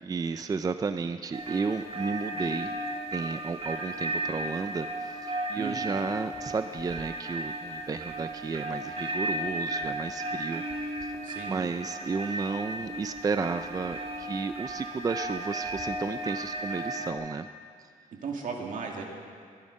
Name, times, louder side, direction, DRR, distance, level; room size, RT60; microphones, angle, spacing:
voice 1, 0.0-2.7 3.1-10.6 11.0-11.1 11.5-17.5, right 4 dB, 25° right, 10 dB, 0.4 m, -33 dB
sound 1, 1.3-17.1, right 1 dB, 45° right, 1.8 m, -35 dB
voice 2, 11.2-11.6 18.2-19.0, right 5 dB, 75° right, 1 dB, 2.3 m, -35 dB
23.0 x 11.0 x 5.3 m, 2.1 s
wide cardioid pair, 135°, 14 cm